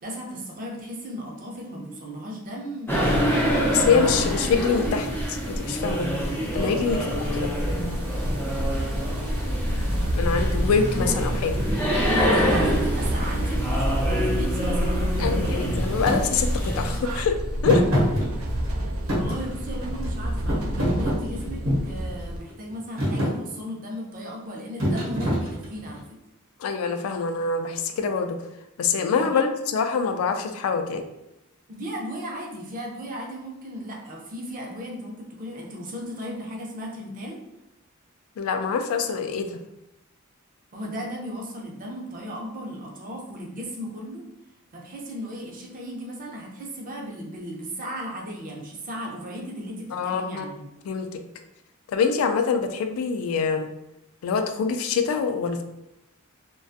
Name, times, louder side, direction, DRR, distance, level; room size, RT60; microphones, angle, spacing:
voice 1, 0.0-3.6 4.1-4.2 6.8-7.0 12.1-15.4 19.2-26.0 29.1-29.4 31.7-37.4 40.7-44.2 44.7-50.7, equal, 40° right, -1 dB, 0.5 m, -36 dB
sound 1, 2.9-17.0, equal, 10° left, 0.5 m, -26 dB
voice 2, 3.7-6.1 6.5-7.5 10.1-11.5 15.2-17.4 17.6-17.8 26.6-28.4 28.8-31.0 38.4-39.6 49.9-50.4 50.9-51.2 51.9-53.7 54.2-55.6, left 5 dB, 70° left, 8 dB, 0.3 m, -25 dB
sound 2, 7.1-22.4, equal, 90° right, 0.4 m, -29 dB
Thump thud, 16.1-16.2 17.6-18.7 19.1-20.1 20.5-21.9 22.5-22.7 23.0-23.4 24.8-25.9, equal, 65° right, 0.9 m, -24 dB
2.4 x 2.2 x 2.5 m, 0.88 s
head